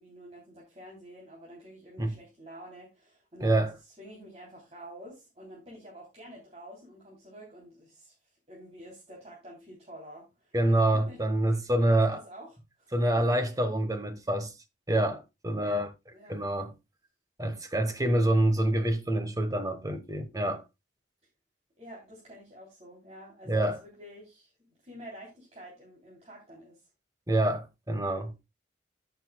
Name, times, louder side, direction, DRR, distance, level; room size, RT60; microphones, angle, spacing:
voice 1, 0.0-11.2 11.5-11.6 11.9-13.2 15.6-15.8 16.1-16.6 21.8-26.9, equal, 35° right, 3.2 m, -49 dB
voice 2, 3.4-3.7 10.5-12.2 12.9-14.5 14.9-15.9 16.3-16.7 17.4-20.6 23.5-23.8 27.3-28.3, right 1 dB, 20° right, 1.2 m, -26 dB
14.5 x 6.7 x 2.3 m
head